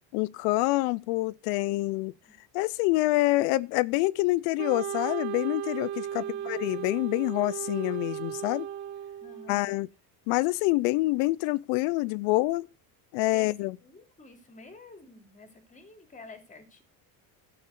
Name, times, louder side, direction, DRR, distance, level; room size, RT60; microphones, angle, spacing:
voice 1, 0.1-2.1 2.5-8.7 9.5-9.9 10.3-12.7 13.1-13.7, left 20 dB, 90° left, 0.6 m, -26 dB
Wind instrument woodwind instrument, 4.6-9.7, right 10 dB, 70° right, 1.0 m, -36 dB
voice 2, 6.1-6.7 9.2-9.8 13.3-13.5 13.8-16.8, left 3 dB, 20° left, 2.9 m, -50 dB
12.5 x 6.0 x 6.6 m
cardioid pair, 155°, 41 cm